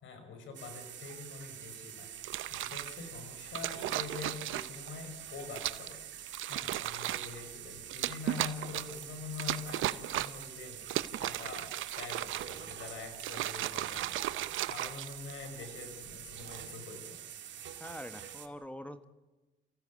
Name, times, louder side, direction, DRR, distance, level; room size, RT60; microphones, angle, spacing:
voice 1, 0.0-2.1 2.5-6.2 6.5-10.8 11.2-14.4 14.7-17.2, left 5 dB, 75° left, 7 dB, 5.1 m, -45 dB
sound 1, 0.5-18.5, right 10 dB, 65° right, 2.0 m, -46 dB
sound 2, 2.2-3.0 3.5-4.9 5.5-5.9 6.3-7.4 7.9-9.0 9.4-10.5 10.8-12.7 13.1-15.6 16.3-16.6, right 14 dB, 80° right, 0.9 m, -36 dB
voice 2, 17.8-19.0, equal, 5° left, 11 dB, 1.4 m, -44 dB
28.5 x 16.0 x 8.3 m, 1.2 s
cardioid pair, 90°, 20 cm